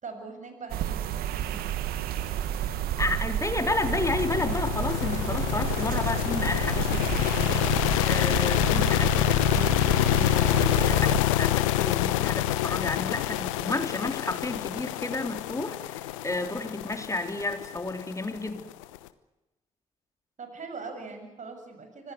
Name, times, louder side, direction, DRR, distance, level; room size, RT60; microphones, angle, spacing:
voice 1, 0.0-1.6 20.4-22.1, right 4 dB, 50° right, 7 dB, 7.1 m, -41 dB
sound 1, 0.7-11.2, right 11 dB, 70° right, 1.6 m, -31 dB
Walk footsteps, 1.1-8.8, equal, ahead, 6.7 m, -52 dB
voice 2, 3.0-18.7, left 2 dB, 20° left, 6 dB, 3.7 m, -32 dB
sound 2, 3.8-19.0, left 15 dB, 85° left, 1.0 m, -26 dB
26.0 x 18.0 x 8.1 m, 1.0 s
hypercardioid pair, 45°, 16 cm